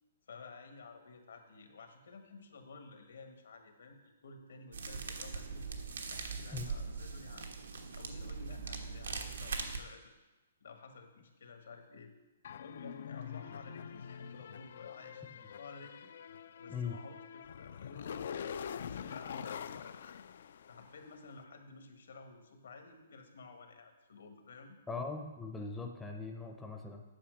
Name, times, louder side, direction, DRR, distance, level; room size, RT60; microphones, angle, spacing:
voice 1, 0.3-5.7 6.1-7.5 7.9-10.1 10.6-12.1 12.6-16.1 16.6-20.1 20.7-24.8, left 4 dB, 80° left, 5 dB, 1.5 m, -53 dB
sound 1, 4.7-9.8, right 5 dB, 90° right, 1.2 m, -41 dB
sound 2, 12.4-21.1, left 8 dB, 55° left, 0.3 m, -45 dB
voice 2, 24.9-27.0, left 4 dB, 5° left, 2 dB, 0.6 m, -40 dB
8.7 x 5.6 x 6.4 m, 1.1 s
hypercardioid pair, 165°, 0 cm